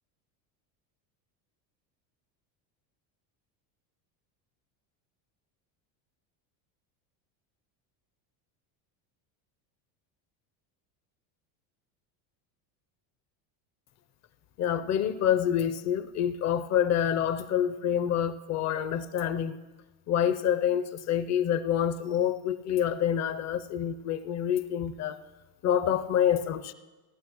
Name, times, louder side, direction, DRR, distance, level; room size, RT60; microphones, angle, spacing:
voice 1, 14.6-19.6 20.1-25.2 25.6-26.7, left 9 dB, 35° left, 0.5 m, -27 dB
17.0 x 11.5 x 3.0 m
supercardioid pair, 115°, 49 cm